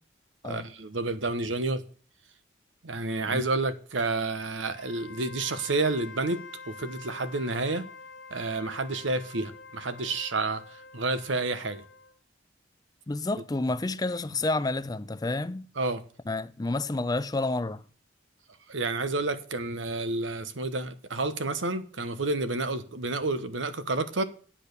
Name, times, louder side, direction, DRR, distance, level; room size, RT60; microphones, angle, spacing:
voice 1, 0.4-1.8 2.8-7.9 8.3-11.8 15.8-16.0 18.7-24.2, right 3 dB, 85° right, 1.1 m, -30 dB
Wind instrument woodwind instrument, 4.7-12.2, left 4 dB, 90° left, 1.7 m, -47 dB
voice 2, 13.1-15.7 16.3-17.8, left 2 dB, 20° left, 0.4 m, -29 dB
10.0 x 8.6 x 6.7 m
head